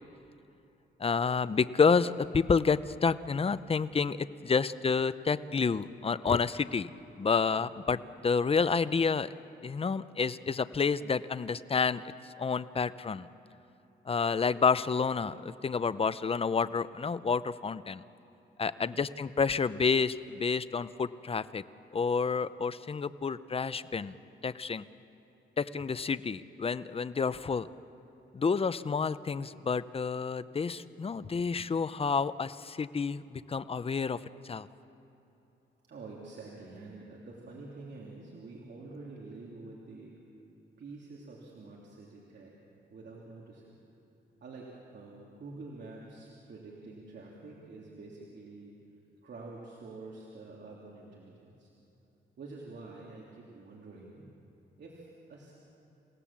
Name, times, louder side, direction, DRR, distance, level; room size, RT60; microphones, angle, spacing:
voice 1, 1.0-6.9 7.2-9.3 9.6-13.3 14.1-18.0 18.6-21.6 21.9-24.2 24.4-24.8 25.6-27.7 28.3-34.2 34.4-34.7, left 5 dB, 30° left, 15 dB, 0.6 m, -29 dB
voice 2, 35.9-40.1 40.8-42.5 42.9-43.8 44.4-48.7 49.2-51.7 52.4-54.3 54.8-55.5, right 3 dB, 60° right, -3 dB, 2.9 m, -47 dB
28.0 x 17.0 x 7.4 m, 2.9 s
cardioid pair, 95°, 20 cm